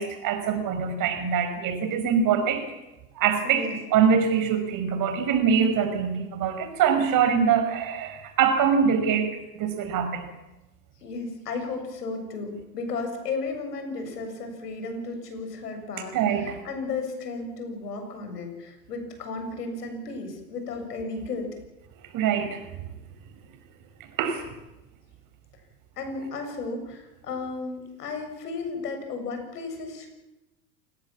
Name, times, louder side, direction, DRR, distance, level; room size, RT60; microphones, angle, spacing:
voice 1, 0.0-2.6 3.1-10.3 16.1-16.6 22.1-22.6 24.2-24.5, right 7 dB, 40° right, 7 dB, 5.9 m, -24 dB
voice 2, 3.4-3.8 11.0-21.5 26.0-30.1, left 3 dB, 75° left, 5 dB, 7.3 m, -34 dB
29.0 x 19.0 x 7.5 m, 0.98 s
hypercardioid pair, 90°, 47 cm